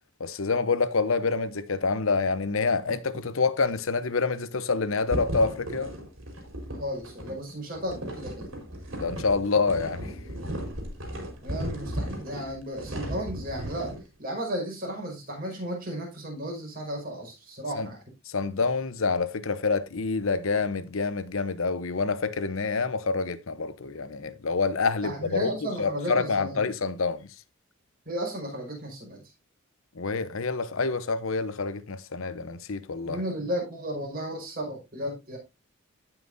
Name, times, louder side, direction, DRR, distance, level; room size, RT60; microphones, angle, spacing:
voice 1, 0.2-5.9 9.0-10.1 17.8-17.9 18.3-27.3 29.9-33.2, left 4 dB, 75° left, 0.8 m, -27 dB
sound 1, 5.1-14.0, right 1 dB, 70° right, 4.2 m, -36 dB
voice 2, 6.7-8.5 11.4-18.0 25.0-26.7 28.0-29.2 33.0-35.4, equal, 45° right, 5.2 m, -34 dB
16.5 x 6.0 x 2.7 m
head